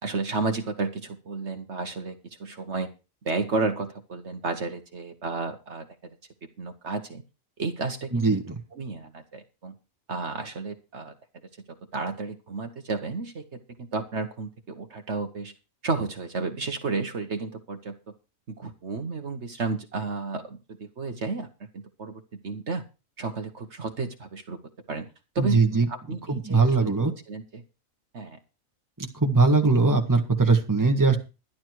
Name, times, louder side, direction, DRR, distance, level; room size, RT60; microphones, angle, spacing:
voice 1, 0.0-2.9 3.2-5.9 6.6-7.2 7.6-8.4 8.7-9.7 10.1-11.1 11.9-15.5 15.8-18.0 18.5-21.5 21.7-22.8 23.2-24.6 24.9-25.1 25.3-26.9 27.3-27.6 28.1-28.4, right 3 dB, 55° right, 6 dB, 1.5 m, -32 dB
voice 2, 8.1-8.5 25.4-25.9 26.3-27.1 29.0-31.2, right 3 dB, 15° right, 3 dB, 1.7 m, -21 dB
11.5 x 11.5 x 4.7 m, 0.30 s
omnidirectional pair, 1.4 m